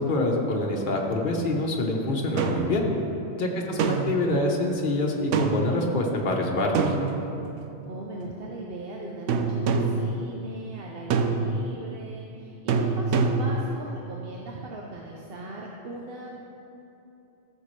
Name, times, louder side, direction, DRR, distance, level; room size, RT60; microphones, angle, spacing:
voice 1, 0.0-2.9 3.4-6.9, left 2 dB, 45° left, 0 dB, 1.1 m, -26 dB
sound 1, 2.4-2.8 3.8-4.3 5.3-5.7 6.7-7.6 9.3-10.1 11.1-11.7 12.7-13.6, right 5 dB, 85° right, 0.9 m, -25 dB
voice 2, 3.5-4.1 7.9-16.3, right 2 dB, 55° right, -2 dB, 0.9 m, -39 dB
14.0 x 6.7 x 3.2 m, 2.8 s
omnidirectional pair, 1.2 m